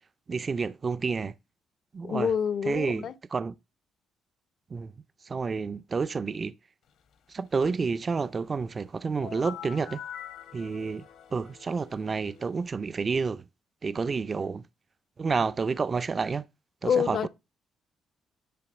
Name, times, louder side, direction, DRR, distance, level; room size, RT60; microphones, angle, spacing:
voice 1, 0.3-1.3 1.9-2.3 2.7-3.5 4.7-4.9 5.3-6.5 7.3-10.0 10.5-11.0 11.3-13.4 13.8-14.6 15.2-16.4 16.8-17.3, right 4 dB, 35° right, 0.4 m, -29 dB
voice 2, 2.0-3.1 16.8-17.3, left 7 dB, 60° left, 0.6 m, -27 dB
sound 1, 9.2-12.8, left 10 dB, 85° left, 1.9 m, -45 dB
10.0 x 3.5 x 6.9 m
cardioid pair, 90°, 0 cm